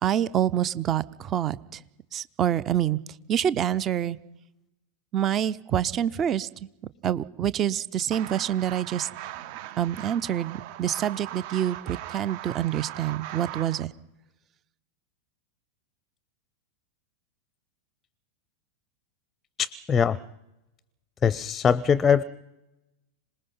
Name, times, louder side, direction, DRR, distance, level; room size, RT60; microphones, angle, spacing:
voice 1, 0.0-1.8 2.1-3.0 3.3-4.2 5.1-6.5 7.0-9.1 9.8-13.9, right 10 dB, 30° right, 18 dB, 0.8 m, -26 dB
sound 1, 8.1-13.9, right 13 dB, 45° right, 1.1 m, -39 dB
voice 2, 19.6-20.2 21.2-22.2, left 7 dB, 20° left, 22 dB, 0.6 m, -22 dB
26.5 x 19.5 x 5.6 m, 0.91 s
figure-of-eight pair, 90°, 0 cm